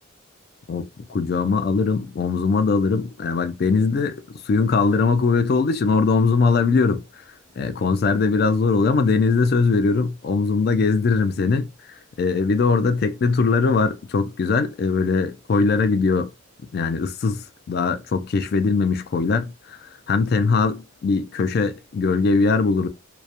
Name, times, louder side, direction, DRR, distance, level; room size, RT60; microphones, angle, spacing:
voice 1, 0.7-4.2 4.5-7.0 7.6-11.7 12.2-16.3 16.7-22.9, left 4 dB, 50° left, 0.3 m, -21 dB
2.2 x 2.0 x 2.7 m
head